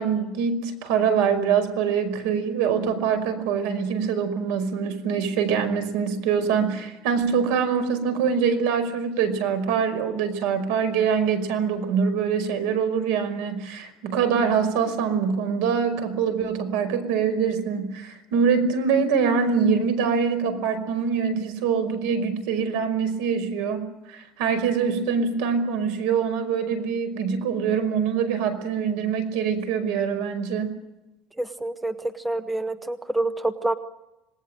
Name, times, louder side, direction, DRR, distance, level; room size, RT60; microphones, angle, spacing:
voice 1, 0.0-30.8, right 6 dB, 70° right, 9 dB, 5.4 m, -24 dB
voice 2, 31.4-33.8, right 2 dB, 5° right, 10 dB, 0.8 m, -27 dB
27.0 x 19.5 x 9.1 m, 0.98 s
cardioid pair, 170°, 0 cm